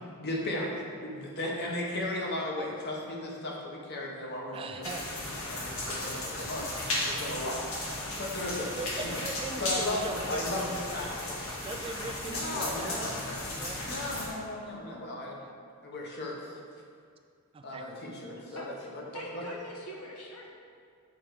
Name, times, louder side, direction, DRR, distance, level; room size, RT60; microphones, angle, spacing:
voice 1, 0.2-4.8 5.5-7.6 8.2-9.2 9.6-11.4 12.3-13.2 13.9-15.4 15.8-16.6 17.6-19.0 19.3-19.4, left 1 dB, 50° left, -2 dB, 1.2 m, -36 dB
voice 2, 4.5-5.2 8.8-10.8 11.6-13.1 13.6-13.8 15.3-15.5 17.5-17.9, right 3 dB, 25° right, 6 dB, 0.3 m, -40 dB
sound 1, 4.8-14.3, left 1 dB, 65° left, 1.6 m, -35 dB
voice 3, 18.1-20.5, left 1 dB, 80° left, -3 dB, 1.3 m, -44 dB
7.3 x 4.5 x 4.9 m, 2.2 s
head